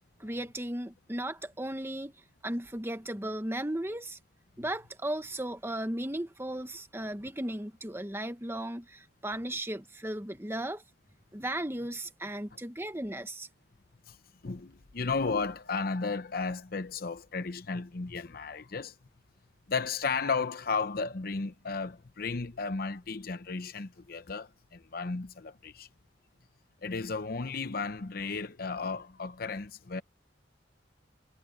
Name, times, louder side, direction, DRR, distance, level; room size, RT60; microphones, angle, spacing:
voice 1, 0.2-2.1 2.4-4.2 4.6-10.8 11.3-13.5, right 1 dB, 15° right, 1.3 m, -36 dB
voice 2, 14.4-18.9 19.7-25.9 26.8-30.0, left 4 dB, 50° left, 0.8 m, -34 dB
head